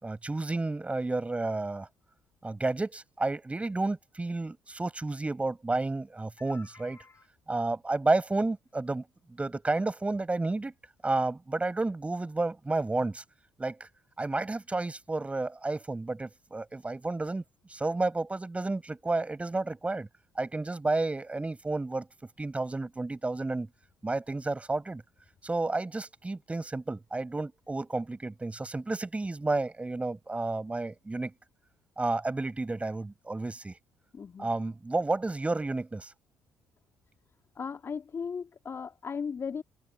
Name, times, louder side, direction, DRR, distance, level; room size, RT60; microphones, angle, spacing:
voice 1, 0.0-1.9 2.4-7.0 7.5-9.0 9.3-10.7 11.0-13.2 13.6-13.9 14.2-17.4 17.7-20.1 20.4-22.1 22.4-23.7 24.0-25.0 25.4-31.3 32.0-33.8 34.4-36.1, right 2 dB, 20° right, 6.4 m, -31 dB
voice 2, 6.4-7.2 34.1-34.5 37.6-39.6, left 6 dB, 35° left, 2.7 m, -37 dB
figure-of-eight pair, 50°, 7 cm